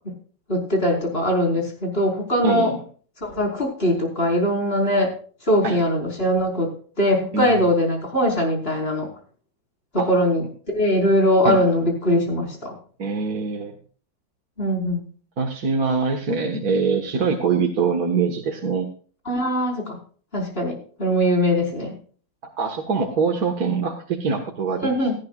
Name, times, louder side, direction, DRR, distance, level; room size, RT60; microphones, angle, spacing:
voice 1, 0.5-2.7 3.2-5.1 5.5-6.7 7.0-9.1 10.1-12.7 14.6-15.1 19.3-20.0 20.3-21.9 24.8-25.2, equal, 30° left, 1 dB, 5.2 m, -21 dB
voice 2, 2.4-2.8 5.6-5.8 7.3-7.6 10.0-10.1 11.4-11.6 13.0-13.7 15.4-18.9 22.6-25.1, right 5 dB, 60° right, 2 dB, 2.1 m, -23 dB
18.0 x 14.0 x 2.5 m, 0.42 s
omnidirectional pair, 1.9 m